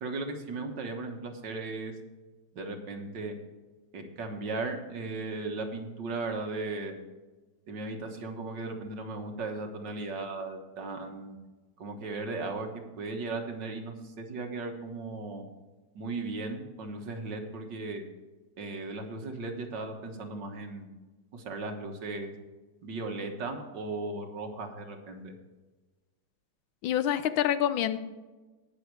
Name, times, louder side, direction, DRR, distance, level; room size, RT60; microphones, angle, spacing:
voice 1, 0.0-1.9 2.5-3.4 3.9-7.0 7.7-11.3 11.8-15.4 15.9-18.0 18.6-20.9 21.3-22.3 22.8-25.3, right 3 dB, 65° right, 3 dB, 2.0 m, -36 dB
voice 2, 26.8-28.0, left 10 dB, 85° left, 12 dB, 1.5 m, -26 dB
18.0 x 6.5 x 4.7 m, 1.2 s
omnidirectional pair, 2.1 m